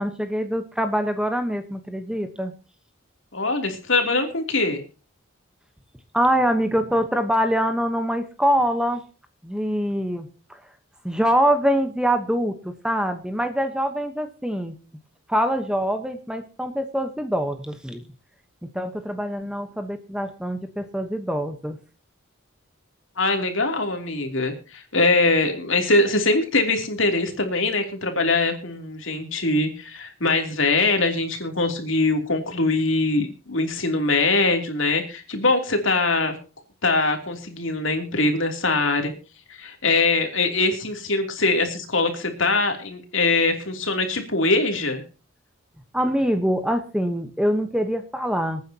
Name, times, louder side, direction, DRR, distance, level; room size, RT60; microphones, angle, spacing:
voice 1, 0.0-2.5 6.1-9.0 9.4-10.6 11.0-14.7 15.3-18.0 18.7-21.8 45.9-48.6, equal, 5° right, 7 dB, 1.0 m, -24 dB
voice 2, 3.3-4.8 23.2-36.3 36.8-39.1 39.6-45.0, left 3 dB, 65° left, 4 dB, 3.0 m, -22 dB
26.5 x 9.4 x 2.9 m, 0.34 s
head